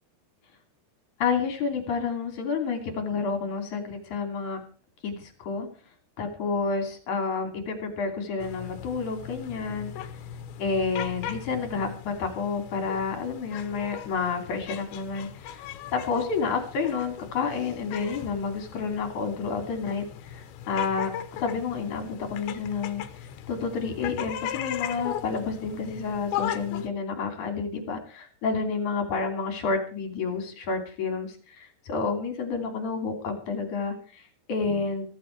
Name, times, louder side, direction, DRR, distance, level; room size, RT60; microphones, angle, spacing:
voice 1, 1.2-4.6 5.0-5.7 6.2-9.9 10.6-35.0, left 5 dB, 45° left, 5 dB, 4.0 m, -30 dB
sound 1, 8.4-26.9, left 10 dB, 90° left, 3.4 m, -38 dB
16.0 x 14.5 x 4.7 m, 0.39 s
omnidirectional pair, 5.0 m